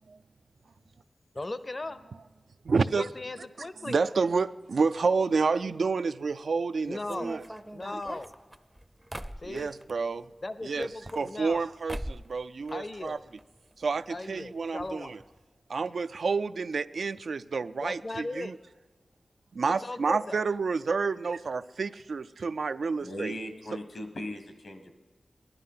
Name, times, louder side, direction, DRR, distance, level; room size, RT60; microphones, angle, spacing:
voice 1, 1.3-2.0 2.9-4.0 6.9-7.3 7.7-8.3 9.4-9.7 10.4-11.6 12.7-13.2 14.1-15.2 17.8-18.5 19.8-20.4, left 2 dB, 40° left, 13 dB, 0.6 m, -37 dB
voice 2, 2.6-3.1 3.6-7.4 7.9-8.0 9.5-10.3 10.6-10.9 11.2-13.2 13.8-15.2 15.7-18.6 19.5-23.4, right 4 dB, 80° right, 13 dB, 0.3 m, -29 dB
sound 1, 7.0-10.0 10.8-11.6 11.9-12.4 12.6-13.4 13.7-13.8 14.0-14.1 14.8-14.9 15.2-15.4, equal, 10° right, 0.5 m, -41 dB
voice 3, 23.0-24.9, left 1 dB, 75° left, 7 dB, 1.3 m, -38 dB
17.5 x 11.5 x 5.7 m, 1.4 s
wide cardioid pair, 100°, 0 cm